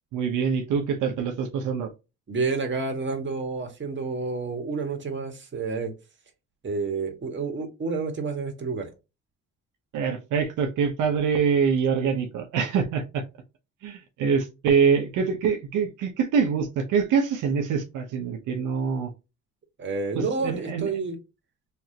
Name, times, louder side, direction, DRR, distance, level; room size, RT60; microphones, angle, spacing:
voice 1, 0.1-1.9 9.9-13.2 13.8-19.1 20.1-20.9, right 6 dB, 90° right, 1.0 m, -25 dB
voice 2, 2.3-5.9 6.6-8.9 19.8-21.2, right 4 dB, 40° right, 1.8 m, -29 dB
4.7 x 3.4 x 2.9 m
cardioid pair, 90°, 30 cm